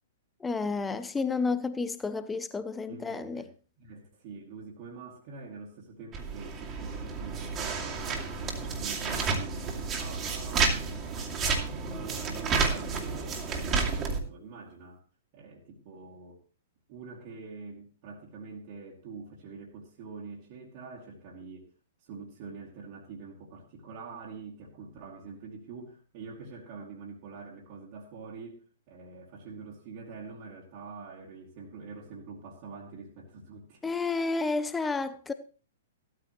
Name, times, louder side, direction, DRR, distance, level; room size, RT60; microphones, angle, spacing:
voice 1, 0.4-3.4 33.8-35.3, left 4 dB, 10° left, 0.6 m, -31 dB
voice 2, 2.9-3.5 3.8-8.3 8.8-10.7 11.0-15.0 15.3-16.4 16.9-21.7 22.0-33.9, right 4 dB, 40° right, 2.4 m, -45 dB
sound 1, 6.1-14.2, right 4 dB, 20° right, 2.4 m, -31 dB
15.5 x 13.5 x 3.1 m
figure-of-eight pair, 110°, 0 cm